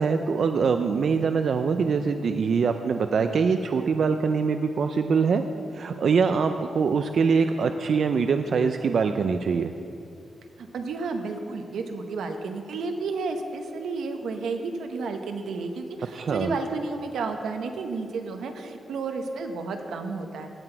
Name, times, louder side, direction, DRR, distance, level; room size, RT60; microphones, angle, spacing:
voice 1, 0.0-5.4 5.7-9.7 16.1-16.5, right 5 dB, 50° right, 7 dB, 0.3 m, -23 dB
voice 2, 10.6-20.5, right 4 dB, 85° right, 5 dB, 1.0 m, -32 dB
16.5 x 6.0 x 4.5 m, 2.7 s
wide cardioid pair, 175°, 0 cm